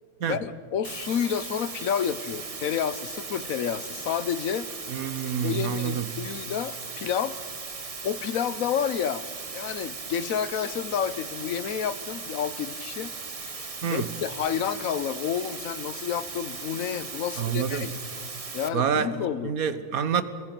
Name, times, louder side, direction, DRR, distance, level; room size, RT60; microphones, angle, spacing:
voice 1, 0.3-4.7 5.4-7.4 8.0-9.2 9.5-13.1 13.4-13.5 13.9-18.0 18.5-19.5, left 8 dB, 70° left, 1.1 m, -30 dB
sound 1, 0.8-18.7, right 4 dB, 30° right, 0.9 m, -38 dB
voice 2, 4.9-6.2 13.8-14.1 17.4-17.9 18.7-19.1 19.4-20.2, right 7 dB, 75° right, 1.5 m, -27 dB
28.0 x 21.5 x 6.0 m
omnidirectional pair, 1.5 m